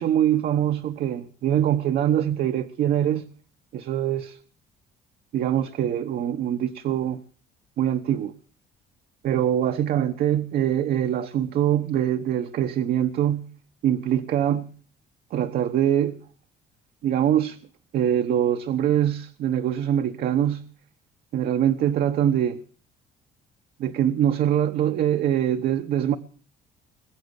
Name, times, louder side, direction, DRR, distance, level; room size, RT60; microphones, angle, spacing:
voice 1, 0.0-3.3 3.7-4.4 5.3-7.2 7.8-8.3 9.2-13.5 13.8-14.7 15.3-16.2 17.0-17.6 17.9-20.6 21.3-22.6 23.8-26.2, right 10 dB, 65° right, 1.1 m, -23 dB
21.5 x 7.7 x 8.2 m
cardioid pair, 110°, 17 cm